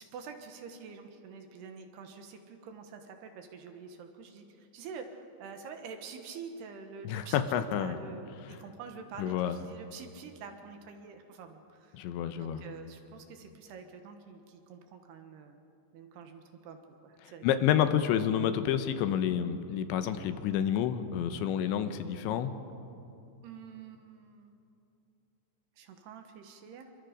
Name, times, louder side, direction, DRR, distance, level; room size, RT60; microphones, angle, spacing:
voice 1, 0.0-7.4 7.8-12.0 12.4-15.6 15.9-17.6 23.4-24.6 25.8-26.9, right 5 dB, 70° right, 6 dB, 3.1 m, -47 dB
voice 2, 7.0-8.0 8.5-8.6 9.2-9.6 11.9-12.6 17.4-22.5, left 9 dB, 80° left, 9 dB, 3.2 m, -29 dB
28.0 x 24.5 x 5.2 m, 2.7 s
omnidirectional pair, 5.4 m